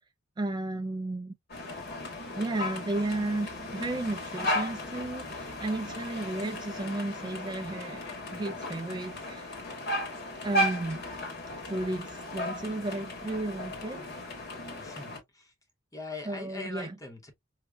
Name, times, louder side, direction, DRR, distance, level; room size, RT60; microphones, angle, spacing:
voice 1, 0.4-1.3 2.3-9.5 10.4-11.0 11.7-14.0 16.3-17.0, right 2 dB, 20° right, 0.3 m, -33 dB
sound 1, 1.5-15.2, left 1 dB, 55° left, 1.1 m, -35 dB
voice 2, 14.8-15.5 15.9-17.3, left 3 dB, 15° left, 0.7 m, -41 dB
4.7 x 2.1 x 2.2 m
head